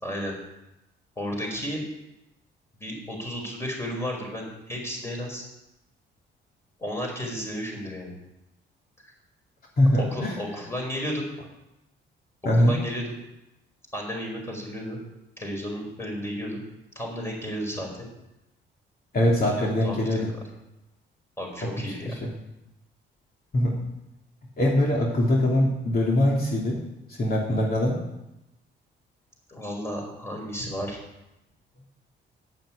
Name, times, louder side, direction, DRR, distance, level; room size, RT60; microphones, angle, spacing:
voice 1, 0.0-0.3 1.2-1.8 2.8-5.4 6.8-8.1 10.1-11.3 12.6-13.2 13.9-15.0 15.4-16.6 16.9-18.1 19.6-20.2 21.4-22.1 29.5-31.0, equal, 15° left, 0 dB, 5.1 m, -33 dB
voice 2, 9.8-10.4 12.4-12.8 19.1-20.3 21.6-21.7 22.1-22.3 23.5-23.7 24.6-26.8 27.2-28.0, left 1 dB, 50° left, -2 dB, 2.8 m, -22 dB
9.5 x 8.9 x 8.9 m, 0.93 s
cardioid pair, 90°, 20 cm